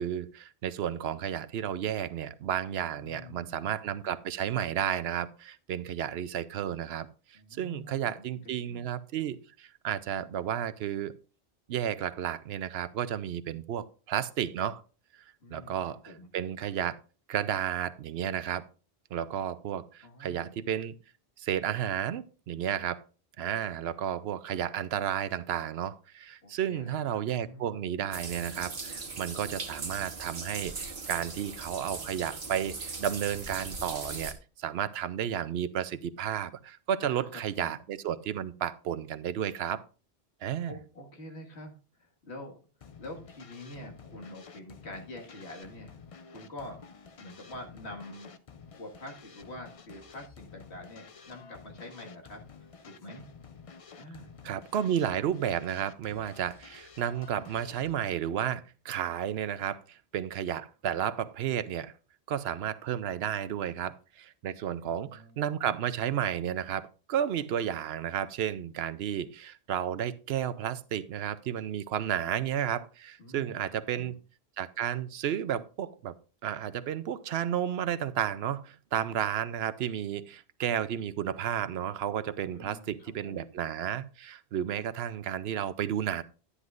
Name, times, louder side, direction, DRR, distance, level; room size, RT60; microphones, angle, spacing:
voice 1, 0.0-11.1 11.7-14.8 15.5-17.0 17.3-18.6 19.1-20.9 21.4-23.0 23.4-39.8 40.4-40.8 54.4-61.9 62.3-74.1 74.6-76.1 76.4-86.2, right 9 dB, 75° right, 0.8 m, -32 dB
voice 2, 3.0-3.7 7.3-8.4 8.7-8.9 15.4-16.3 20.0-20.6 26.4-28.1 37.0-37.7 40.7-42.6 43.0-46.0 46.3-46.8 47.2-48.3 48.7-53.2 54.0-54.3 64.8-65.6 73.2-73.6 73.9-74.2 82.5-83.5, left 1 dB, 90° left, 2.1 m, -46 dB
sound 1, 28.1-34.3, right 4 dB, 55° right, 1.3 m, -39 dB
sound 2, 42.8-57.9, left 5 dB, 40° left, 0.5 m, -51 dB
11.0 x 9.9 x 2.5 m
omnidirectional pair, 1.1 m